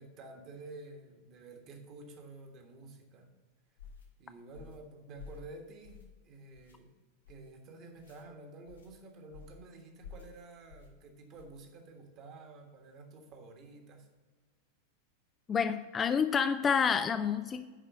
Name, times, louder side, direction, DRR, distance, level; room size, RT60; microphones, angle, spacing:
voice 1, 0.0-3.3 4.2-6.9 7.3-14.1, right 3 dB, 35° right, 1.5 m, -50 dB
sound 1, 3.8-4.1 4.5-4.8 5.2-5.5 5.8-6.2 6.5-6.8 7.2-7.5 8.0-8.2 8.7-8.9 9.3-9.6 10.0-10.3 10.7-10.9 11.3-11.6, left 6 dB, 75° left, 1.7 m, -51 dB
voice 2, 15.5-17.6, left 6 dB, 20° left, 0.4 m, -28 dB
9.9 x 4.4 x 6.8 m
figure-of-eight pair, 90°, 0 cm